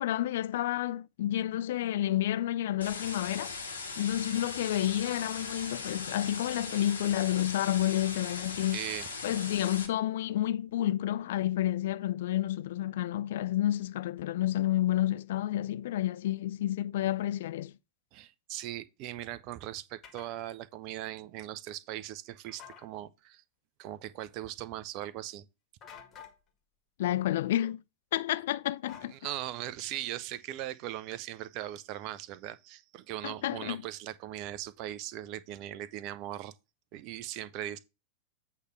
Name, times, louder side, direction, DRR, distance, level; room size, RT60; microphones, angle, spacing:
voice 1, 0.0-3.5 4.0-8.8 9.2-17.7 27.0-27.8 28.1-29.1 33.2-33.8, left 13 dB, 55° left, 0.4 m, -30 dB
sound 1, 2.8-9.9, left 4 dB, 75° left, 1.6 m, -39 dB
voice 2, 8.7-9.1 18.1-23.4 23.8-25.5 29.1-36.5 36.9-37.8, right 13 dB, 40° right, 0.7 m, -39 dB
sound 2, 20.0-20.3 22.5-22.9 25.8-26.4 28.9-29.7, left 8 dB, 30° left, 1.8 m, -50 dB
8.3 x 3.3 x 5.8 m
figure-of-eight pair, 90°, 0 cm